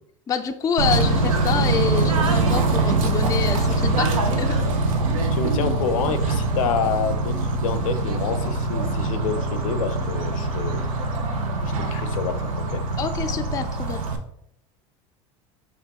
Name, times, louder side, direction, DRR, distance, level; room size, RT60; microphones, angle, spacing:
voice 1, 0.3-4.6 13.0-14.0, left 6 dB, 20° left, 6 dB, 0.3 m, -27 dB
Bird / Train, 0.8-14.2, right 2 dB, 90° right, 0.6 m, -23 dB
voice 2, 5.3-10.8 11.8-12.8, left 6 dB, 80° left, 9 dB, 0.6 m, -28 dB
4.5 x 3.5 x 2.9 m, 0.74 s
hypercardioid pair, 85°, 17 cm